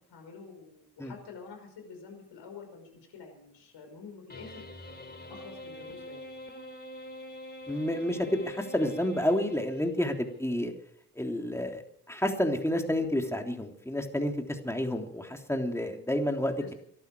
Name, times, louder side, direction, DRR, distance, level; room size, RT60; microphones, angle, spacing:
voice 1, 0.1-4.7 5.3-6.2 16.6-16.7, left 5 dB, 65° left, 4 dB, 5.4 m, -48 dB
sound 1, 4.3-10.1, left 1 dB, 20° left, 3.5 m, -45 dB
voice 2, 7.7-10.7 11.1-11.8 12.1-16.7, left 1 dB, 5° left, 3 dB, 3.3 m, -30 dB
23.0 x 12.0 x 4.8 m, 0.65 s
hypercardioid pair, 40°, 45 cm